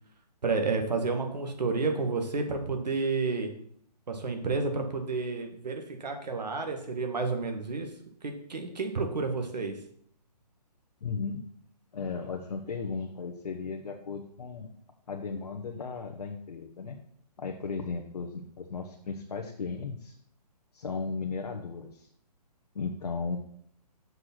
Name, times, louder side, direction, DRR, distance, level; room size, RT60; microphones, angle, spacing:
voice 1, 0.4-3.5 4.1-7.9 8.2-9.8, right 4 dB, 75° right, 5 dB, 1.7 m, -30 dB
voice 2, 11.0-11.4 11.9-14.7 15.1-17.0 17.4-20.1 20.7-22.1 22.7-23.4, left 5 dB, 65° left, 3 dB, 1.1 m, -35 dB
6.5 x 4.8 x 6.0 m, 0.66 s
hypercardioid pair, 150°, 21 cm